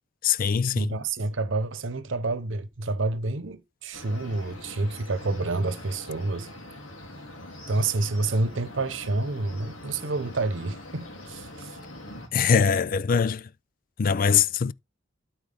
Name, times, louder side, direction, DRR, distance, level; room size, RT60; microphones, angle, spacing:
voice 1, 0.2-1.0 12.3-13.4 14.0-14.7, left 6 dB, 45° left, 0.4 m, -22 dB
voice 2, 0.7-6.5 7.7-11.8, right 2 dB, 70° right, 0.9 m, -28 dB
sound 1, 3.9-12.3, left 1 dB, 85° left, 2.8 m, -43 dB
12.5 x 4.6 x 3.5 m
head